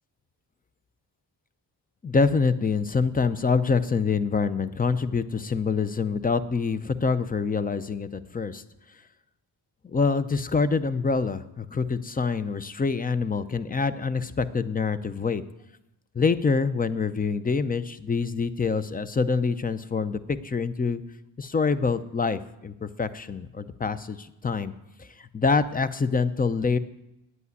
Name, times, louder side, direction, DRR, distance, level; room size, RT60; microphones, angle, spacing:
voice 1, 2.0-8.6 9.8-15.4 16.1-21.0 21.4-24.7 25.0-26.8, left 4 dB, 20° left, 14 dB, 0.6 m, -26 dB
9.4 x 8.4 x 9.6 m, 0.91 s
wide cardioid pair, 125°, 42 cm